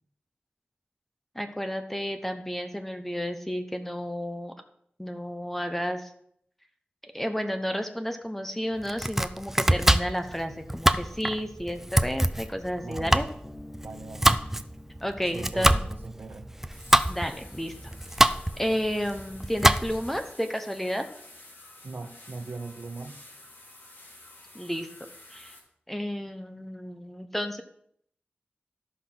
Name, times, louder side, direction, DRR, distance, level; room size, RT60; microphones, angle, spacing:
voice 1, 1.3-4.5 5.0-6.1 7.0-13.2 15.0-15.8 17.1-17.7 18.6-21.1 24.5-24.9 25.3-25.5 25.9-27.6, equal, 5° left, 7 dB, 1.0 m, -31 dB
Domestic sounds home sounds, 8.8-20.2, right 1 dB, 10° right, 0.5 m, -25 dB
voice 2, 12.8-13.2 13.8-14.4 15.3-16.5 21.8-23.2, right 3 dB, 70° right, 7 dB, 1.2 m, -40 dB
Bass guitar, 13.4-17.0, left 1 dB, 30° left, 2.3 m, -50 dB
sound 1, 16.7-25.6, left 2 dB, 70° left, 3.1 m, -50 dB
13.0 x 5.8 x 6.0 m, 0.68 s
wide cardioid pair, 95°, 4 cm